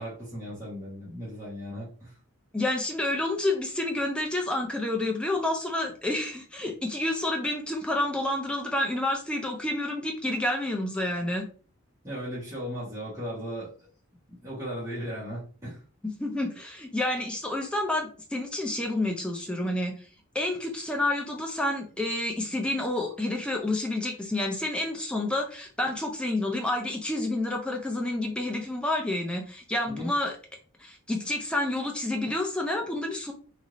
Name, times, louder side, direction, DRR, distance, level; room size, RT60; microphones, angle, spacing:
voice 1, 0.0-2.2 12.0-13.7 14.3-15.8 29.9-30.1, equal, 15° right, -10 dB, 1.1 m, -36 dB
voice 2, 2.5-11.4 16.2-19.9 20.3-30.3 30.8-33.3, left 1 dB, 5° left, 1 dB, 0.5 m, -29 dB
3.0 x 2.6 x 2.5 m, 0.39 s
head